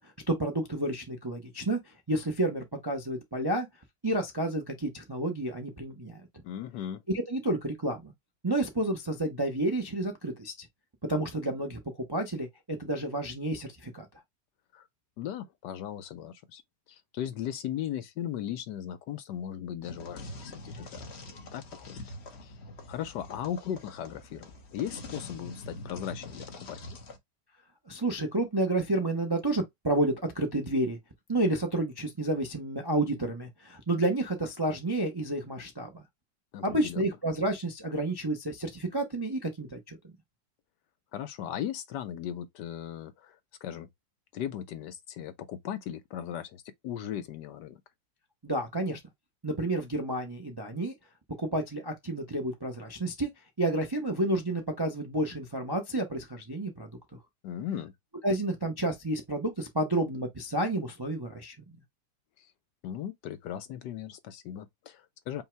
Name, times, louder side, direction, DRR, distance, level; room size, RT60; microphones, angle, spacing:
voice 1, 0.0-3.7 4.0-6.2 7.1-8.1 8.4-10.7 11.1-11.8 12.1-14.1 27.9-31.0 31.3-36.0 36.6-40.1 48.4-49.0 49.4-50.9 51.4-53.3 53.6-56.9 58.2-61.5, right 1 dB, 25° right, 0.5 m, -30 dB
voice 2, 6.4-7.0 14.7-14.9 15.2-16.6 16.9-21.0 21.3-22.0 22.4-22.6 22.9-27.0 36.5-37.1 41.1-43.9 44.3-47.8 57.4-57.9 62.4-62.5 62.8-65.4, left 10 dB, 75° left, 1.1 m, -37 dB
sound 1, 19.8-27.2, left 2 dB, 40° left, 1.1 m, -44 dB
5.5 x 2.1 x 4.5 m
omnidirectional pair, 2.1 m